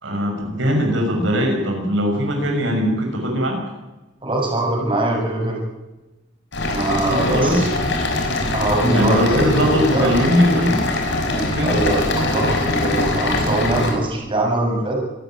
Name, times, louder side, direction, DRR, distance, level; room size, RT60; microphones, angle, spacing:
voice 1, 0.0-3.6 7.1-8.1 8.9-10.8 11.5-11.7, equal, 70° right, 2 dB, 6.4 m, -20 dB
voice 2, 4.2-5.6 6.6-7.6 8.5-10.1 11.3-15.0, right 1 dB, 25° right, 0 dB, 6.8 m, -22 dB
sound 1, 6.5-13.9, left 2 dB, 65° left, 6.0 m, -23 dB
27.0 x 14.0 x 9.1 m, 1.0 s
head